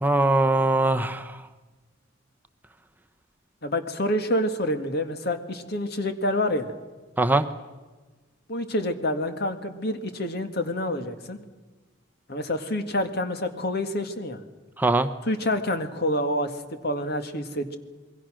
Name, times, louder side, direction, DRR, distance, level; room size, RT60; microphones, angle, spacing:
voice 1, 0.0-1.4 7.2-7.5 14.8-15.1, right 2 dB, 10° right, 8 dB, 0.8 m, -21 dB
voice 2, 3.6-6.8 8.5-11.4 12.3-14.4 15.3-17.8, left 1 dB, 55° left, 8 dB, 2.0 m, -27 dB
27.0 x 22.0 x 6.4 m, 1.3 s
head